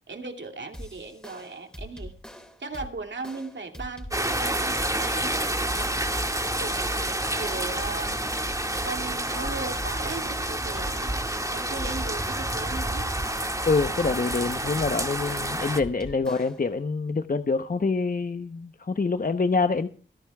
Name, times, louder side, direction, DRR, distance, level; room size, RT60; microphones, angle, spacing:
voice 1, 0.1-2.1 2.6-6.0 6.6-8.1 8.8-11.1 11.5-13.1, right 3 dB, 65° right, 4 dB, 2.6 m, -37 dB
sound 1, 0.7-16.7, equal, 5° left, 4.1 m, -43 dB
sound 2, 4.1-15.8, right 1 dB, 15° right, 1.9 m, -29 dB
voice 2, 13.7-19.9, left 4 dB, 45° left, 9 dB, 0.9 m, -26 dB
28.0 x 11.5 x 2.3 m, 0.39 s
cardioid pair, 50°, 21 cm